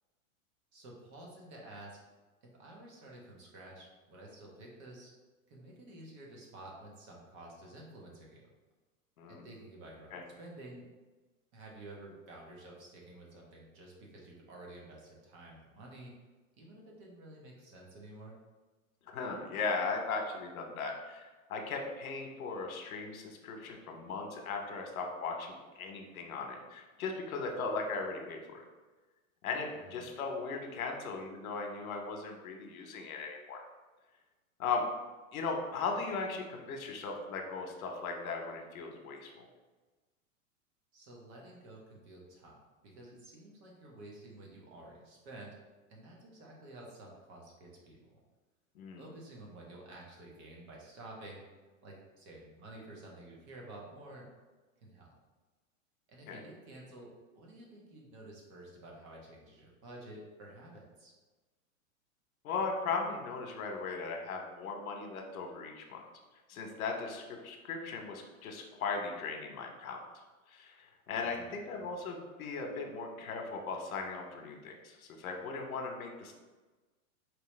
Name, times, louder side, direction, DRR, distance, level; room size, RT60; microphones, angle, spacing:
voice 1, 0.7-2.0 2.4-5.1 5.5-8.5 9.3-10.9 11.5-16.1 16.6-18.4 29.7-30.2 40.9-42.6 42.8-45.6 45.9-48.2 49.0-51.4 51.8-54.3 54.8-55.1 56.1-57.1 57.3-61.1 71.2-71.5, right 1 dB, 35° right, -2 dB, 1.0 m, -51 dB
voice 2, 19.1-28.6 29.4-33.6 34.6-34.9 35.3-39.5 48.7-49.0 56.3-56.4 62.4-66.0 66.5-70.0 70.5-76.3, left 4 dB, 80° left, 3 dB, 1.0 m, -38 dB
4.6 x 3.2 x 3.2 m, 1.3 s
supercardioid pair, 145°, 42 cm